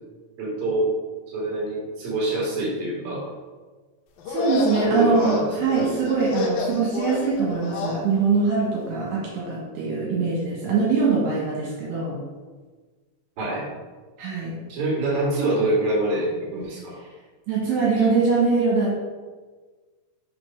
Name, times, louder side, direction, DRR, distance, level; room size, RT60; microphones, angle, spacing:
voice 1, 0.4-0.9 1.3-3.2 4.7-5.4 13.4-13.7 14.7-17.0 18.0-18.1, right 2 dB, 40° right, -5 dB, 2.7 m, -25 dB
sound 1, 4.2-8.0, left 3 dB, 75° left, 2.2 m, -29 dB
voice 2, 4.3-12.2 14.2-14.6 17.5-19.0, right 4 dB, 70° right, -5 dB, 3.3 m, -23 dB
6.7 x 4.5 x 5.7 m, 1.4 s
omnidirectional pair, 5.4 m